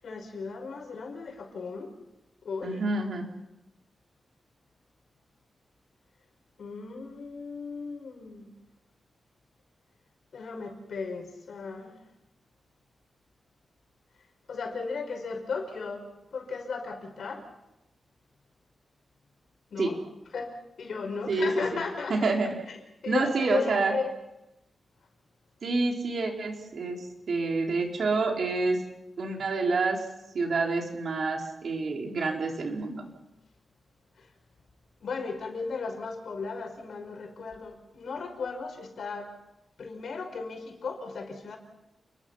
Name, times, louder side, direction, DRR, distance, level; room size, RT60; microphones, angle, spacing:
voice 1, 0.0-2.0 2.4-2.9 6.6-8.5 10.3-12.0 14.5-16.0 16.3-17.5 19.7-20.0 20.3-22.3 22.7-22.8 23.0-24.1 34.2-34.3 35.0-39.3 39.8-41.6, left 4 dB, 70° left, 4 dB, 5.7 m, -35 dB
voice 2, 2.6-3.3 19.8-19.9 21.3-21.5 22.1-22.5 23.1-23.9 25.6-27.0 27.3-28.8 29.2-30.0 30.3-33.0, right 3 dB, 65° right, 1 dB, 4.5 m, -28 dB
29.5 x 22.0 x 5.8 m, 0.91 s
wide cardioid pair, 135°, 0 cm